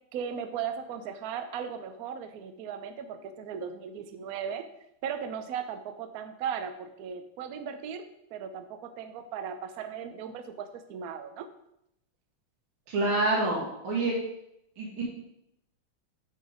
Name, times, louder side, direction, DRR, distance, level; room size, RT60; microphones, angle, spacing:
voice 1, 0.1-4.6 5.0-11.5, right 7 dB, 90° right, 9 dB, 0.8 m, -37 dB
voice 2, 12.9-14.2 14.8-15.0, right 2 dB, 70° right, -3 dB, 2.2 m, -27 dB
5.7 x 5.3 x 4.9 m, 0.80 s
omnidirectional pair, 2.4 m